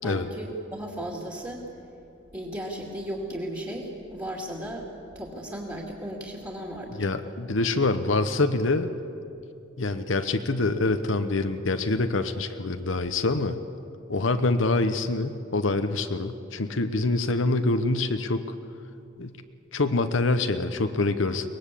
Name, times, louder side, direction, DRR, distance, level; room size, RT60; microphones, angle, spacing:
voice 1, 0.0-1.6 2.3-4.9 5.1-7.1, right 1 dB, 20° right, -3 dB, 2.6 m, -35 dB
voice 2, 7.0-8.9 9.8-13.6 14.1-18.4 19.2-19.3 19.7-21.5, left 2 dB, 70° left, 8 dB, 1.0 m, -25 dB
23.5 x 19.5 x 8.5 m, 2.7 s
head